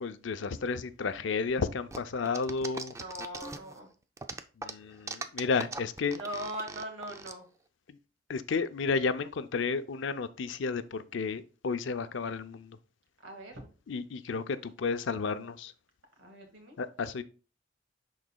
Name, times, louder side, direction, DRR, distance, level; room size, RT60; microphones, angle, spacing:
voice 1, 0.0-2.9 4.6-6.2 7.9-8.0 8.3-12.8 13.9-15.7 16.8-17.2, left 4 dB, 70° left, 0.5 m, -32 dB
sound 1, 1.9-3.8 4.2-7.3, right 3 dB, 15° right, 0.3 m, -40 dB
voice 2, 2.9-3.9 6.2-7.4 13.2-13.7 16.2-16.8, equal, 80° right, 1.8 m, -40 dB
11.0 x 4.0 x 2.2 m
head